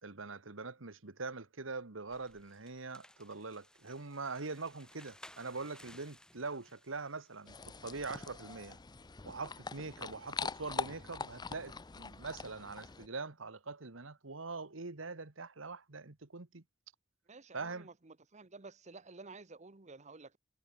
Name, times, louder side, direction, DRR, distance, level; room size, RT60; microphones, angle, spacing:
voice 1, 0.0-7.6 7.8-8.8 9.2-16.6 17.5-17.9, right 3 dB, 85° right, 1.6 m, -43 dB
sound 1, 2.1-7.6, left 1 dB, 5° left, 5.5 m, -59 dB
sound 2, 7.5-13.1, left 4 dB, 20° left, 0.6 m, -43 dB
voice 2, 17.3-20.4, right 3 dB, 35° right, 1.2 m, -52 dB
head